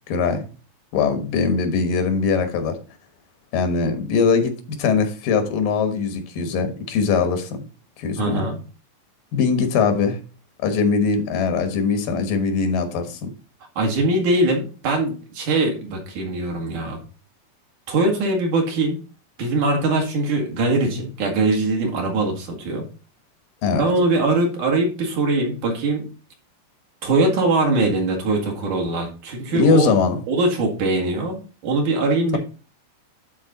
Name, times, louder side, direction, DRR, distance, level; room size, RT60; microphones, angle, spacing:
voice 1, 0.1-0.5 0.9-2.8 3.5-7.6 8.0-8.4 9.3-10.2 10.6-13.3 23.6-23.9 29.5-30.2, left 5 dB, 90° left, 3.0 m, -21 dB
voice 2, 8.2-8.6 13.8-17.0 17.9-19.0 19.4-22.9 23.8-26.1 27.0-29.9 30.3-32.4, right 2 dB, 65° right, 3.2 m, -22 dB
11.5 x 4.3 x 4.0 m
omnidirectional pair, 3.8 m